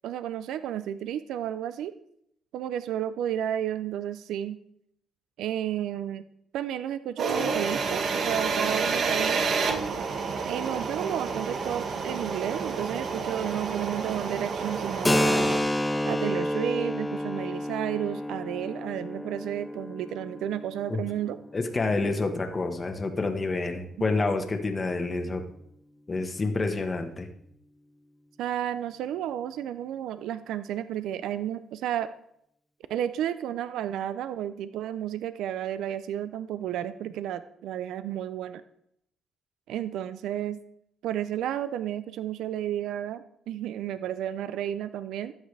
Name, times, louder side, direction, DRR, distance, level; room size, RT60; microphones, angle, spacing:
voice 1, 0.0-1.9 2.5-4.6 5.4-6.2 6.5-9.5 10.4-15.5 16.0-21.4 24.0-24.1 28.4-32.1 32.9-38.6 39.7-40.6 41.0-45.3, right 11 dB, 85° right, 13 dB, 0.5 m, -32 dB
sound 1, 7.2-15.6, right 5 dB, 60° right, 1.3 m, -29 dB
Keyboard (musical), 15.0-22.4, left 1 dB, 10° left, 0.7 m, -30 dB
voice 2, 21.5-25.4 26.1-27.3, left 3 dB, 30° left, 5 dB, 1.3 m, -28 dB
13.0 x 9.0 x 3.4 m, 0.73 s
cardioid pair, 90°, 0 cm